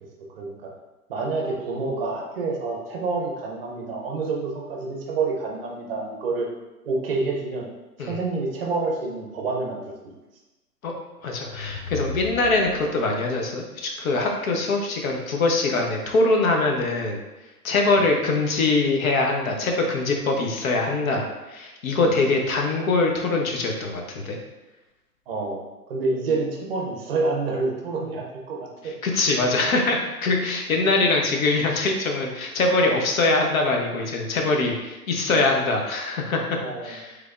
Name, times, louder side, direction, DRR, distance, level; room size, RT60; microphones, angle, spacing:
voice 1, 1.1-6.5 6.8-7.7 8.0-9.9 11.4-11.5 17.9-18.1 22.0-22.2 25.3-25.6 25.9-28.9 36.6-37.0, right 3 dB, 40° right, -1 dB, 0.6 m, -28 dB
voice 2, 11.2-17.2 17.6-24.4 28.8-36.6 36.8-37.1, left 3 dB, 60° left, 2 dB, 0.8 m, -23 dB
sound 1, 11.2-13.2, left 3 dB, 15° left, 0.8 m, -36 dB
3.3 x 3.2 x 2.4 m, 1.0 s
hypercardioid pair, 145°, 48 cm